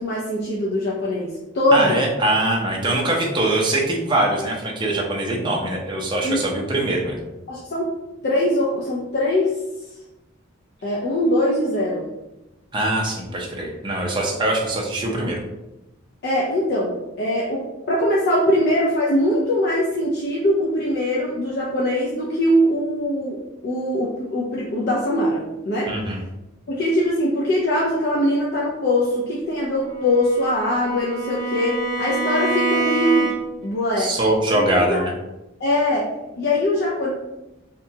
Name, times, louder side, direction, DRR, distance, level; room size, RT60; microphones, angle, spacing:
voice 1, 0.0-2.1 6.2-6.4 7.5-7.9 8.2-9.5 10.8-12.1 16.2-23.4 23.6-25.9 26.7-33.3 33.6-34.1 34.5-35.0 35.6-37.1, left 1 dB, 55° left, -5 dB, 0.5 m, -22 dB
voice 2, 1.7-7.3 12.7-15.4 25.9-26.2 34.0-35.1, right 1 dB, 25° right, -1 dB, 0.5 m, -22 dB
Bowed string instrument, 29.8-33.7, right 2 dB, 60° right, 0.7 m, -26 dB
2.8 x 2.2 x 2.7 m, 0.97 s
head